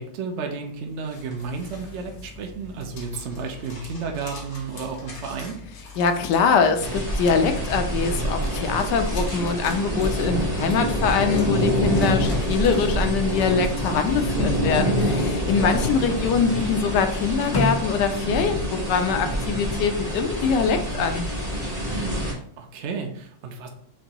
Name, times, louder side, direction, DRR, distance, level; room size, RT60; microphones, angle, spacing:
voice 1, 0.0-5.5 22.2-22.3 22.6-23.7, right 5 dB, 55° right, 2 dB, 0.8 m, -32 dB
sound 1, 0.8-18.8, left 2 dB, 55° left, 1.6 m, -38 dB
voice 2, 6.0-21.3, left 5 dB, 75° left, 7 dB, 1.1 m, -23 dB
sound 2, 6.8-22.3, equal, 30° right, 1.2 m, -26 dB
6.4 x 2.6 x 2.9 m, 0.63 s
omnidirectional pair, 1.9 m